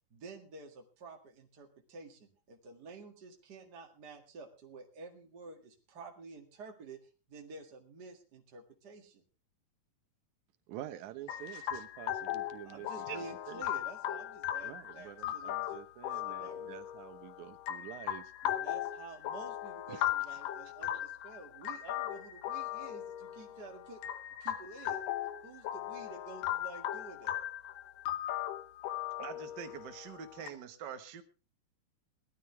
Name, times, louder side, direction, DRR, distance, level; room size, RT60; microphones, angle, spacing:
voice 1, 0.1-7.0 7.3-9.2 12.1-12.2 12.7-15.8 16.1-16.8 18.4-24.0 24.4-25.0 25.4-27.4, right 3 dB, 35° right, 1 dB, 2.1 m, -50 dB
voice 2, 10.7-13.6 14.6-18.3 19.9-20.4, right 12 dB, 70° right, 11 dB, 2.3 m, -47 dB
sound 1, 11.3-30.5, left 12 dB, 90° left, 2.7 m, -38 dB
voice 3, 29.2-31.2, right 8 dB, 55° right, 8 dB, 1.2 m, -45 dB
19.5 x 13.0 x 3.4 m, 0.31 s
omnidirectional pair, 3.7 m